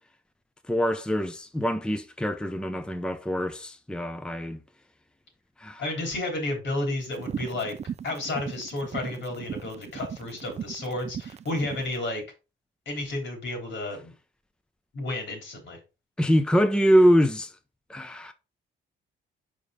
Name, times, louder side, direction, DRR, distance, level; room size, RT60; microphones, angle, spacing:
voice 1, 0.7-4.6 5.6-5.8 16.2-17.5 17.9-18.3, equal, 5° left, 0.7 m, -24 dB
voice 2, 5.8-7.7 8.0-12.2 12.9-14.1 14.9-15.8, left 2 dB, 70° left, 3.5 m, -32 dB
sound 1, 7.1-11.9, right 8 dB, 35° right, 0.4 m, -37 dB
5.4 x 4.9 x 5.0 m
cardioid pair, 90°, 20 cm